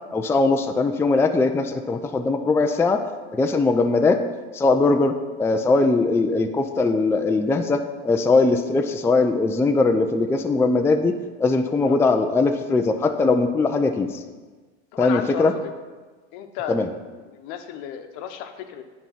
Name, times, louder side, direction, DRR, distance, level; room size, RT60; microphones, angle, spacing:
voice 1, 0.1-3.0 3.3-4.2 4.5-5.1 5.4-11.1 11.4-14.2 15.0-15.5 16.7-16.9, left 3 dB, 10° left, 5 dB, 0.4 m, -20 dB
voice 2, 14.9-15.7 16.3-16.8 17.3-18.8, left 9 dB, 60° left, 7 dB, 0.9 m, -33 dB
9.0 x 4.6 x 5.6 m, 1.3 s
hypercardioid pair, 95°, 33 cm